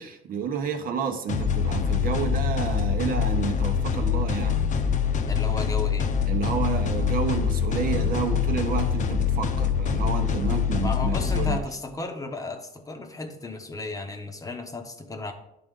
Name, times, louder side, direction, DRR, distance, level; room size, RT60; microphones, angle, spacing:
voice 1, 0.0-4.6 6.3-11.6, right 6 dB, 60° right, 6 dB, 0.9 m, -30 dB
sound 1, 1.3-11.6, left 7 dB, 45° left, 0.7 m, -25 dB
voice 2, 5.3-6.1 10.8-15.3, left 3 dB, 20° left, 5 dB, 0.9 m, -34 dB
10.5 x 3.8 x 3.7 m, 0.88 s
cardioid pair, 110°, 17 cm